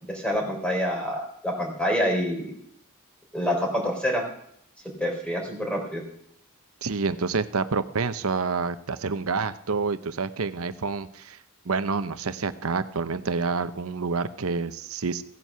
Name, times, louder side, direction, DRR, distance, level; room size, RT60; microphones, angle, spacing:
voice 1, 0.0-2.5 3.3-4.2 5.0-6.0, equal, 5° left, 1 dB, 3.8 m, -27 dB
voice 2, 6.8-11.4 11.6-15.2, right 4 dB, 80° right, 12 dB, 0.8 m, -28 dB
16.5 x 9.5 x 5.6 m, 0.69 s
head